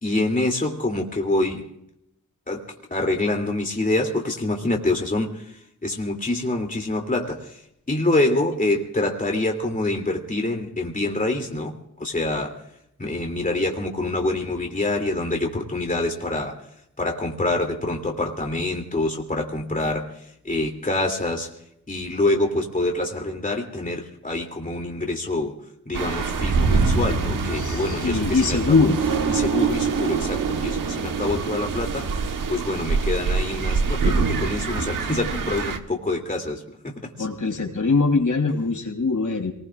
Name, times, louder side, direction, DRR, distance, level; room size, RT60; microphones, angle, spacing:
voice 1, 0.0-1.7 2.5-7.6 7.9-12.6 13.0-16.7 17.0-21.5 21.9-25.6 25.9-28.9 29.3-32.2 32.5-37.3, left 2 dB, 25° left, 1 dB, 2.8 m, -26 dB
sound 1, 25.9-35.8, right 4 dB, 90° right, 1.3 m, -24 dB
voice 2, 27.5-29.0 37.2-39.5, left 4 dB, 75° left, 1 dB, 4.3 m, -22 dB
27.0 x 20.5 x 2.5 m, 0.74 s
wide cardioid pair, 75°, 32 cm